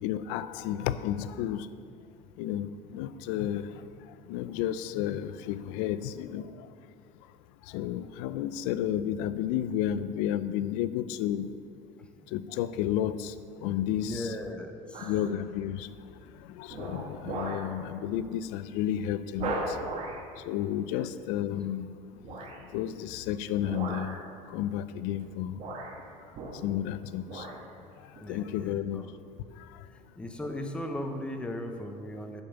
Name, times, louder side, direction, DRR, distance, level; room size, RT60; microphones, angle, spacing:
voice 1, 0.0-1.7 2.4-4.0 4.3-6.7 7.6-11.5 12.3-13.3 13.6-14.3 15.0-19.8 20.4-21.9 22.7-24.2 24.5-25.6 26.6-27.5 28.0-29.1 29.5-29.9, left 11 dB, 85° left, 14 dB, 0.5 m, -32 dB
voice 2, 14.0-15.1 20.9-21.1 28.2-29.1 30.2-32.4, left 1 dB, 5° left, 5 dB, 0.6 m, -37 dB
sound 1, 14.9-15.3 15.8-16.2 16.7-17.7 18.1-18.3 18.7-18.8 19.4-20.3 22.2-22.7 23.6-24.3 25.1-25.3 25.6-26.9 27.2-27.6 28.1-28.2, right 2 dB, 40° right, 1.3 m, -37 dB
10.5 x 5.4 x 6.9 m, 2.4 s
cardioid pair, 175°, 17 cm